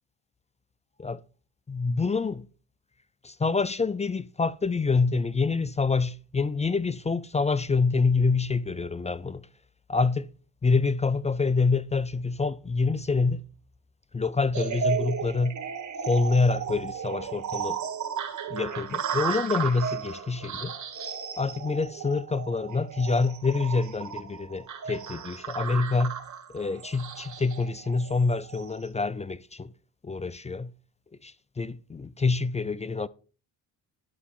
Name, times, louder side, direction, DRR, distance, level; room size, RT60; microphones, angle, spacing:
voice 1, 1.7-2.5 3.2-9.5 9.9-10.3 10.6-13.4 14.1-15.6 16.1-17.8 18.5-20.7 21.4-26.2 26.5-29.7 30.0-30.7 31.2-33.1, left 4 dB, 15° left, 0.4 m, -26 dB
sound 1, 14.5-28.8, right 7 dB, 45° right, 1.9 m, -34 dB
11.0 x 4.2 x 7.1 m
supercardioid pair, 75°, 40 cm